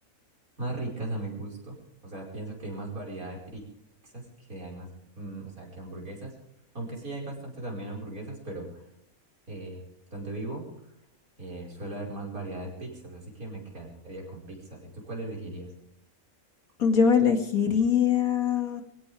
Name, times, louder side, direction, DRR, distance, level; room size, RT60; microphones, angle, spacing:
voice 1, 0.6-1.8 2.0-3.7 4.0-4.9 5.2-6.3 6.7-8.8 9.5-9.8 10.1-10.6 11.4-15.7, right 2 dB, 85° right, -2 dB, 5.7 m, -38 dB
voice 2, 16.8-18.8, left 7 dB, 85° left, 5 dB, 2.6 m, -22 dB
23.0 x 16.5 x 3.5 m, 0.74 s
omnidirectional pair, 1.5 m